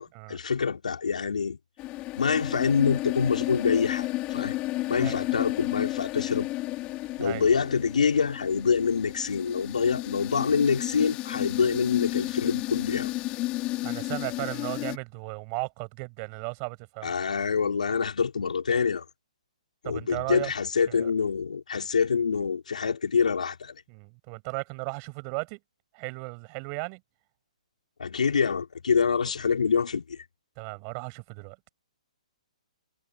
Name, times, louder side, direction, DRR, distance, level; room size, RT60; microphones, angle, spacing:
voice 1, 0.0-1.6 2.2-4.6 4.9-6.5 7.2-13.1 17.0-19.0 19.8-23.7 28.0-30.2, left 6 dB, 80° left, 4.7 m, -26 dB
sound 1, 1.8-15.0, left 18 dB, 25° left, 2.7 m, -32 dB
voice 2, 13.8-17.1 19.8-20.5 20.9-21.1 23.9-25.6 25.9-27.0 30.6-31.6, right 40 dB or more, 30° right, 6.0 m, -35 dB
hypercardioid pair, 145°, 4 cm